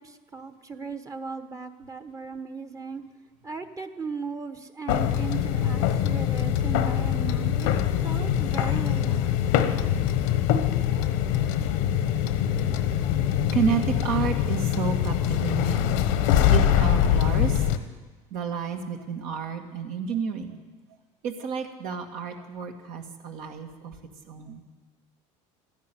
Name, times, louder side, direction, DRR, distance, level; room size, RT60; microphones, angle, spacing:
voice 1, 0.0-3.0 3.4-9.4, right 5 dB, 20° right, 9 dB, 1.1 m, -37 dB
sound 1, 4.9-17.8, left 10 dB, 85° left, 1.2 m, -23 dB
voice 2, 13.5-15.9 16.5-17.6 18.3-20.6 21.2-23.9 24.3-24.6, right 6 dB, 70° right, 4 dB, 2.1 m, -30 dB
13.5 x 10.5 x 9.4 m, 1.3 s
supercardioid pair, 105°, 15 cm